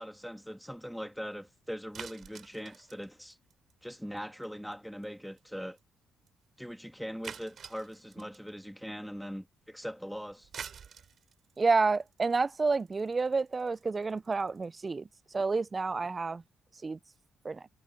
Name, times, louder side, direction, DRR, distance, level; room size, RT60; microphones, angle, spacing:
voice 1, 0.0-3.4 3.8-5.8 6.6-10.5, equal, ahead, 1.9 m, -41 dB
sound 1, 1.9-4.2 4.4-4.7 5.0-5.1 5.4-5.5 5.8-5.9 6.3-6.4 7.2-8.5 10.3-14.6, right 7 dB, 55° right, 3.7 m, -47 dB
voice 2, 11.6-15.1 15.3-16.4 16.8-17.0 17.4-17.6, right 4 dB, 30° right, 0.5 m, -29 dB
cardioid pair, 90°, 0 cm